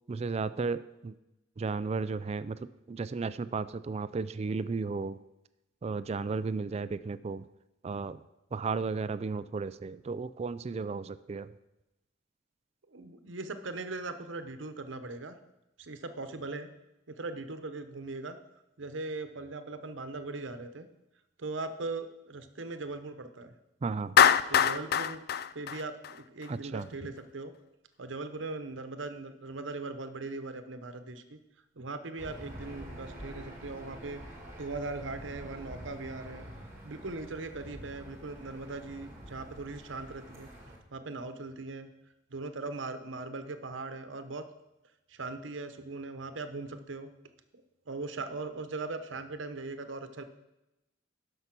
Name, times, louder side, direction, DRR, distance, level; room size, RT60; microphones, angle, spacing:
voice 1, 0.1-1.1 1.6-5.2 5.8-7.5 7.8-8.2 8.5-11.5 23.8-24.2 26.5-26.9, right 4 dB, 35° right, 15 dB, 0.3 m, -34 dB
voice 2, 12.9-15.4 15.8-16.7 17.1-18.4 18.8-20.9 21.4-23.5 24.5-25.2 25.5-27.5 28.0-31.4 31.8-34.2 34.6-36.5 36.8-40.5 40.9-41.9 42.3-44.4 45.1-47.1 47.9-50.2, right 3 dB, 75° right, 10 dB, 0.9 m, -39 dB
Clapping, 24.2-26.5, left 8 dB, 55° left, 0.4 m, -23 dB
Aircraft / Engine, 32.2-40.8, right 1 dB, 15° right, 2.1 m, -47 dB
12.5 x 5.5 x 6.0 m, 0.93 s
head